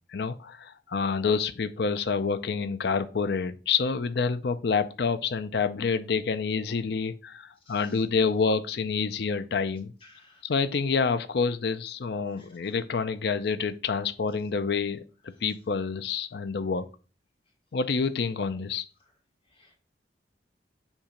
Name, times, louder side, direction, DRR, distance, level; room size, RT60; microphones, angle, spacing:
voice 1, 0.1-9.9 10.4-16.8 17.7-18.8, left 5 dB, 65° left, 11 dB, 0.5 m, -28 dB
voice 2, 7.6-8.0 10.0-10.4 12.3-12.7 19.5-19.7, left 3 dB, 30° left, 0 dB, 1.6 m, -57 dB
7.2 x 2.8 x 5.1 m, 0.34 s
head